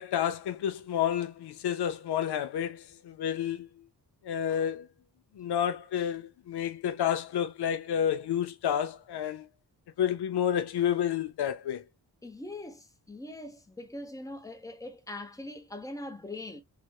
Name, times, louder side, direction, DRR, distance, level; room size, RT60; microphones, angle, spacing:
voice 1, 0.0-3.7 4.2-4.9 5.4-9.5 10.0-11.8, left 9 dB, 70° left, 0.6 m, -30 dB
voice 2, 12.2-16.6, left 2 dB, 10° left, 0.7 m, -42 dB
3.3 x 3.1 x 2.2 m
wide cardioid pair, 145°, 41 cm